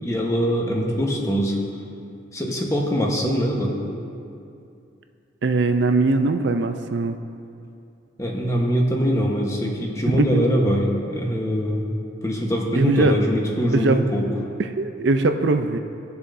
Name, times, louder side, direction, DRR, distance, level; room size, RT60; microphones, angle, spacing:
voice 1, 0.0-1.6 2.3-3.8 8.2-12.0 12.2-14.3, equal, 15° left, -1 dB, 1.1 m, -23 dB
voice 2, 5.4-7.2 10.1-10.4 12.7-13.1 13.7-14.0 14.6-15.8, right 3 dB, 65° right, 7 dB, 0.5 m, -21 dB
19.5 x 6.9 x 2.7 m, 2.6 s
head